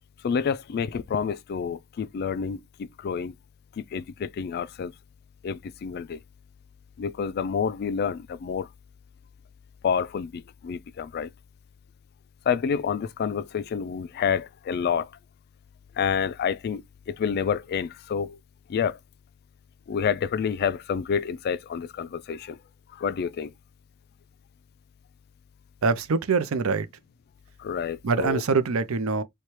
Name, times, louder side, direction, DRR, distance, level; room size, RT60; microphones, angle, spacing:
voice 1, 0.2-3.3 3.8-4.9 5.4-6.2 7.0-8.7 9.8-11.3 12.5-15.1 16.0-18.4 18.7-19.0 19.9-22.6 22.9-23.5 27.6-28.4, left 7 dB, 50° left, 0.3 m, -28 dB
voice 2, 25.8-26.9 28.0-29.2, right 4 dB, 85° right, 0.6 m, -24 dB
4.3 x 2.2 x 3.0 m
head